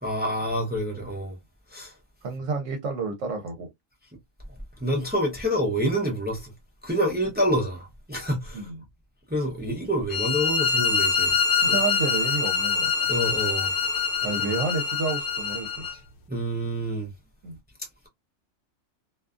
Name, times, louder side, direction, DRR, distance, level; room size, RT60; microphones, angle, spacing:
voice 1, 0.0-1.4 1.7-1.9 4.8-6.5 6.8-8.7 9.3-11.4 13.1-13.7 14.2-14.3 16.3-17.1 17.8-17.9, equal, 15° right, 0.4 m, -27 dB
voice 2, 2.2-3.7 8.5-8.8 11.5-13.1 14.2-16.0 17.4-17.6, right 4 dB, 70° right, 1.0 m, -30 dB
sound 1, 10.1-15.9, left 5 dB, 60° left, 0.8 m, -25 dB
2.5 x 2.3 x 2.3 m
omnidirectional pair, 1.4 m